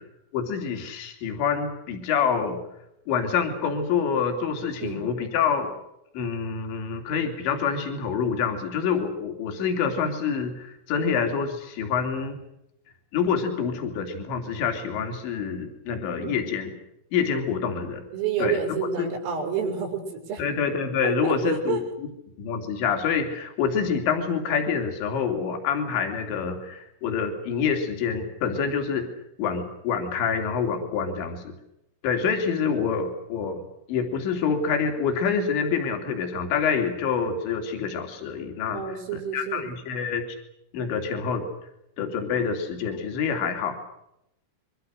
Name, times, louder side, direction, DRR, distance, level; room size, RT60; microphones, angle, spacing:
voice 1, 0.3-2.6 3.1-5.7 6.2-12.4 13.1-16.7 17.1-18.0 18.4-18.6 19.0-19.1 20.4-21.8 22.4-29.0 29.4-31.5 32.0-33.6 33.9-40.2 40.7-41.5 42.0-43.8, left 6 dB, 65° left, 5 dB, 5.4 m, -26 dB
voice 2, 18.1-20.4 21.0-21.8 32.7-32.9 38.7-39.7, right 6 dB, 85° right, 4 dB, 7.4 m, -29 dB
26.5 x 24.0 x 6.6 m, 0.84 s
omnidirectional pair, 5.7 m